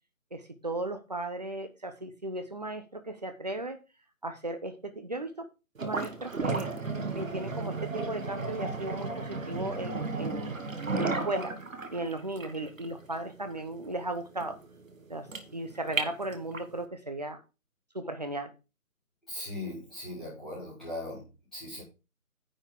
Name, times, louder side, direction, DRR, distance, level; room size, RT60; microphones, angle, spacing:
voice 1, 0.3-3.8 4.2-5.5 5.8-6.7 7.1-10.5 10.9-11.5 11.9-14.6 15.1-17.4 17.9-18.5, right 2 dB, 30° right, 8 dB, 0.9 m, -36 dB
sound 1, 5.8-16.8, right 3 dB, 65° right, 1.8 m, -34 dB
voice 2, 19.3-21.8, left 1 dB, ahead, -15 dB, 1.2 m, -39 dB
10.0 x 5.3 x 4.6 m, 0.30 s
figure-of-eight pair, 165°, 43 cm